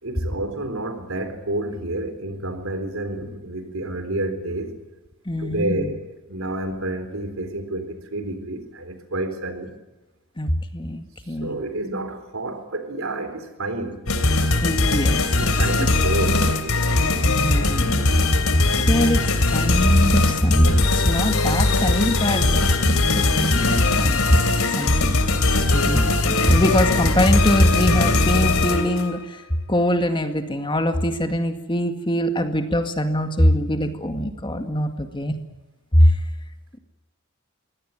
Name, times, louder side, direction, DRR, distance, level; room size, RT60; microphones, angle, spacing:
voice 1, 0.0-4.7 5.4-6.0 6.3-9.7 11.4-14.0 15.4-16.8, right 2 dB, 75° right, 3.8 m, -29 dB
voice 2, 5.3-5.9 10.4-11.5 14.6-15.9 17.2-18.0 18.9-22.5 23.0-24.3 24.8-25.2 25.7-29.4 29.7-35.3 35.9-36.2, equal, 20° left, 2.0 m, -22 dB
sound 1, 14.1-29.1, left 2 dB, 90° left, 3.1 m, -20 dB
23.5 x 17.5 x 9.1 m
head